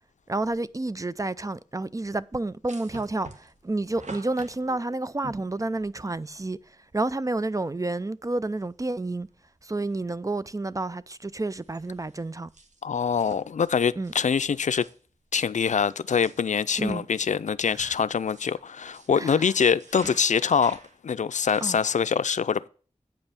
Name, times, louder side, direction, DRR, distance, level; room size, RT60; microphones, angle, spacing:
voice 1, 0.3-9.3 9.6-12.5 14.0-14.1 16.8-17.1 17.7-18.0 19.2-19.5 21.6-21.8, right 2 dB, 25° right, 0.5 m, -30 dB
sound 1, 2.7-6.2 7.4-7.5 7.8-7.9 8.6-9.0 9.3-10.1 10.5-10.7 11.0-15.9 16.2-16.6 17.3-19.2 19.6-21.8, right 3 dB, 85° right, 1.2 m, -47 dB
voice 2, 12.8-14.9 15.3-22.7, left 6 dB, 80° left, 0.4 m, -24 dB
8.9 x 5.4 x 5.8 m
wide cardioid pair, 45°, 12 cm